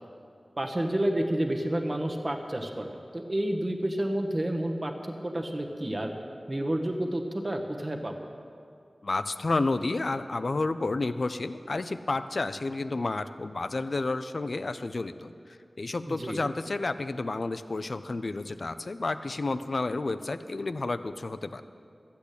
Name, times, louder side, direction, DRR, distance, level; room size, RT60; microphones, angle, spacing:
voice 1, 0.6-4.9 5.2-6.1 6.5-8.1 16.1-16.4, right 1 dB, 35° right, 3 dB, 1.3 m, -30 dB
voice 2, 9.0-15.3 15.8-21.6, left 3 dB, 65° left, 11 dB, 0.5 m, -30 dB
13.5 x 8.4 x 8.4 m, 2.4 s
wide cardioid pair, 75°, 0 cm